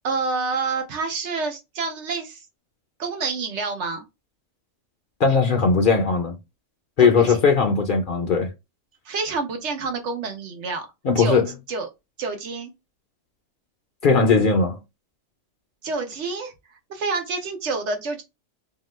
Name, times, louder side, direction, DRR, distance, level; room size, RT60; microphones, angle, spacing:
voice 1, 0.0-2.4 3.0-4.1 7.0-7.4 9.1-10.9 11.2-11.4 11.7-11.9 12.2-12.7 15.8-16.5 16.9-18.2, right 4 dB, 70° right, 1.0 m, -28 dB
voice 2, 5.2-6.4 7.0-8.5 11.0-11.5 14.0-14.8, left 5 dB, 55° left, 0.7 m, -18 dB
2.8 x 2.2 x 3.1 m
omnidirectional pair, 1.2 m